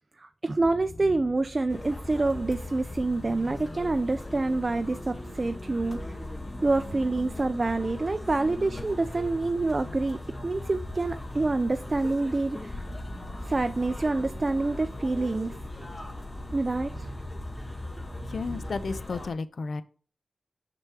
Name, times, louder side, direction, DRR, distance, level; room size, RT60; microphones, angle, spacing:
voice 1, 0.2-6.0 6.6-12.9 13.4-15.5 16.5-17.1, right 2 dB, 45° right, 0.4 m, -27 dB
sound 1, 0.6-19.0, left 1 dB, 10° left, 3.1 m, -41 dB
sound 2, 1.7-19.3, left 2 dB, 35° left, 1.5 m, -41 dB
voice 2, 18.3-19.8, left 4 dB, 75° left, 0.6 m, -32 dB
6.6 x 6.0 x 4.7 m
cardioid pair, 50°, 0 cm